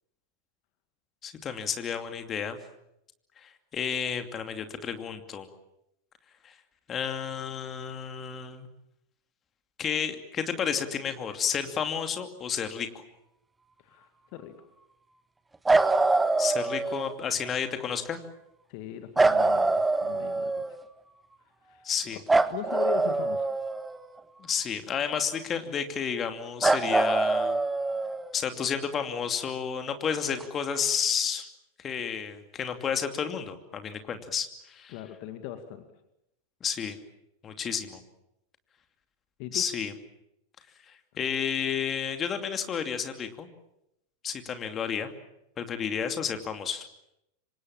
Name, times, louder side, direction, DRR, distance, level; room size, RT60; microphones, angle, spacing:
voice 1, 1.2-2.6 3.4-5.5 6.4-6.5 6.9-8.7 9.8-13.0 16.4-18.2 21.8-22.2 24.4-27.6 28.3-31.5 31.8-34.9 36.6-37.0 37.4-38.0 39.5-39.9 40.8-43.5 44.2-45.1 45.6-46.9, left 7 dB, 25° left, 7 dB, 2.6 m, -31 dB
voice 2, 13.8-14.5 17.2-17.3 18.7-20.8 21.4-22.2 22.5-23.5 34.9-35.8 39.4-39.6, left 12 dB, 45° left, 8 dB, 2.0 m, -40 dB
sound 1, 15.7-17.1 19.2-20.8 22.3-24.2 26.6-28.3 30.4-30.5, right 3 dB, 10° right, 1.4 m, -24 dB
27.5 x 25.0 x 7.3 m, 0.84 s
figure-of-eight pair, 90°, 0 cm